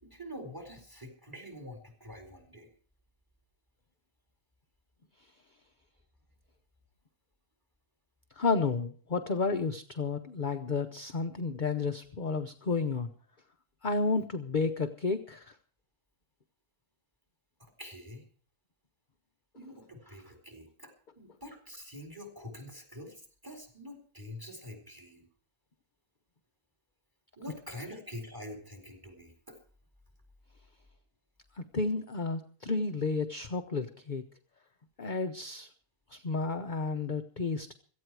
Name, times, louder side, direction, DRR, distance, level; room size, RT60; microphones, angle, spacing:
voice 1, 0.0-2.7 17.8-18.2 19.5-25.2 27.4-29.6, left 1 dB, 15° right, 5 dB, 4.2 m, -46 dB
voice 2, 8.4-13.1 13.8-15.5 31.6-34.2 35.0-35.7 36.1-37.7, left 4 dB, 40° left, 7 dB, 0.9 m, -31 dB
17.0 x 14.0 x 4.8 m, 0.43 s
omnidirectional pair, 1.5 m